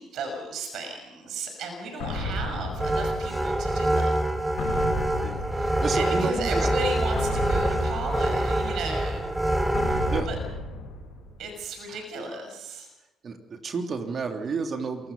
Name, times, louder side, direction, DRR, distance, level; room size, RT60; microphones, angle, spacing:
voice 1, 0.0-4.1 5.7-9.3 9.6-9.7 10.3-10.4 11.4-12.9, right 2 dB, 65° right, 5 dB, 6.3 m, -35 dB
sound 1, 2.0-3.8 4.6-6.3 7.1-8.9 9.7-11.5, left 2 dB, 70° left, 7.9 m, -34 dB
sound 2, 2.8-10.2, right 1 dB, 10° right, 3.2 m, -25 dB
voice 2, 5.2-6.7 10.1-10.3 11.9-12.0 13.2-15.1, right 4 dB, 45° right, 4 dB, 3.3 m, -31 dB
28.0 x 18.0 x 5.7 m, 0.98 s
hypercardioid pair, 60°, 0 cm